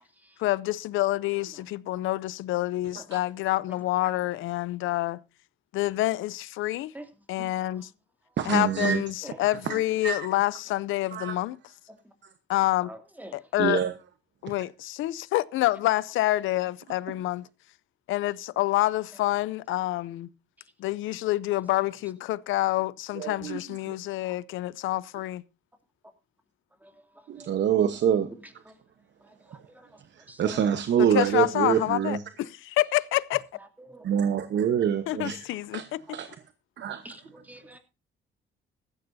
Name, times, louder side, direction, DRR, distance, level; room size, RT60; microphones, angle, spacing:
voice 1, 0.4-5.2 5.7-6.9 7.3-7.9 8.5-11.6 12.5-12.9 13.3-13.8 14.4-17.5 18.1-20.3 20.8-25.4 31.0-33.4 35.1-36.0, left 16 dB, 85° left, 0.5 m, -27 dB
voice 2, 8.4-9.0 9.5-10.3 11.1-11.4 13.6-13.9 23.1-23.6 23.9-24.0 27.3-28.3 30.2-32.2 34.0-35.5 35.7-35.9 36.1-36.3 36.8-37.0, right 8 dB, 65° right, 1.1 m, -26 dB
voice 3, 12.9-13.4 24.2-24.3 26.8-26.9 27.4-27.5 28.7-28.8 29.7-29.9 30.3-30.4 33.9-34.1 37.0-37.8, right 1 dB, 10° right, 2.6 m, -45 dB
16.0 x 13.5 x 2.7 m
cardioid pair, 90°, 20 cm